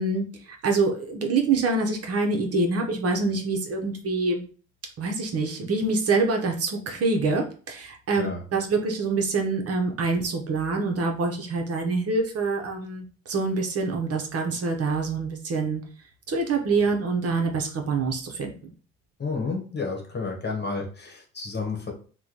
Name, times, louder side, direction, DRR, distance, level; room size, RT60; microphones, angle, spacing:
voice 1, 0.0-4.4 5.0-15.8 16.3-18.7, right 3 dB, 50° right, 3 dB, 0.8 m, -26 dB
voice 2, 19.2-21.9, left 4 dB, 35° left, 2 dB, 1.1 m, -31 dB
3.0 x 2.2 x 3.8 m, 0.40 s
cardioid pair, 90°, 30 cm